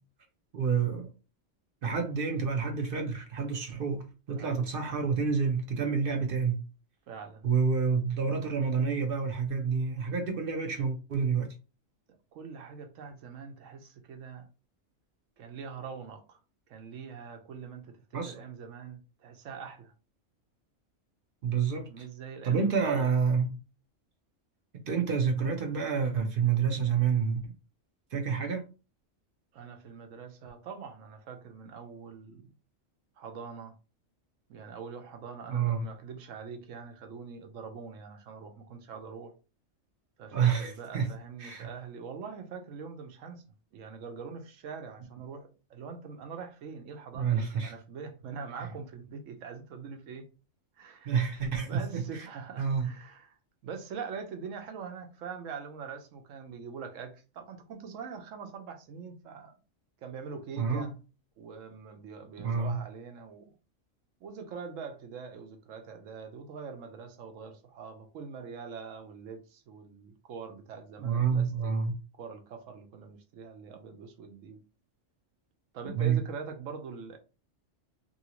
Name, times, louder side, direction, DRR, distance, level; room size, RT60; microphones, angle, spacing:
voice 1, 0.5-1.1 1.8-6.6 7.4-11.5 18.1-18.3 21.4-22.0 22.4-23.6 24.7-27.5 28.1-28.6 35.5-35.9 40.3-41.1 41.4-41.7 47.1-47.7 48.6-48.7 51.1-52.3 52.6-52.9 60.6-61.0 62.4-62.8 71.0-71.9 75.8-76.2, right 6 dB, 55° right, 0.7 m, -28 dB
voice 2, 4.3-4.7 7.1-7.5 12.3-14.5 15.4-16.4 16.7-19.9 21.9-23.1 29.5-32.4 33.2-33.7 34.5-39.3 40.2-43.4 43.7-50.3 50.8-51.1 51.6-53.3 53.6-59.6 60.0-60.9 61.4-63.5 64.2-71.7 72.2-74.6 75.7-77.2, right 5 dB, 75° right, 1.0 m, -43 dB
2.7 x 2.7 x 2.8 m
omnidirectional pair, 1.4 m